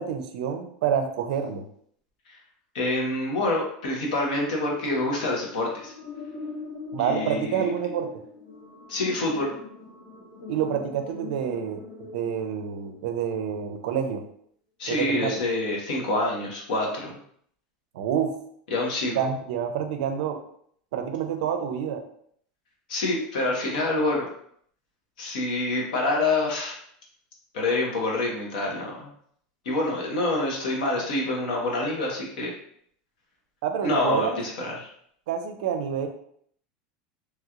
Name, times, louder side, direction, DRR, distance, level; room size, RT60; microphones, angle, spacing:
voice 1, 0.0-1.6 6.9-8.2 10.5-14.2 14.9-15.4 17.9-18.3 19.2-20.4 20.9-22.0 33.6-34.4 35.3-36.1, right 8 dB, 70° right, 7 dB, 0.4 m, -28 dB
voice 2, 2.7-5.9 7.0-7.7 8.9-9.5 14.8-17.2 18.7-19.2 22.9-24.3 25.2-26.8 27.5-29.1 29.6-32.5 33.8-34.9, left 2 dB, 90° left, -1 dB, 1.0 m, -26 dB
sound 1, 3.9-13.3, left 3 dB, 65° left, 0.9 m, -41 dB
3.1 x 2.9 x 2.4 m, 0.65 s
supercardioid pair, 180°, 4 cm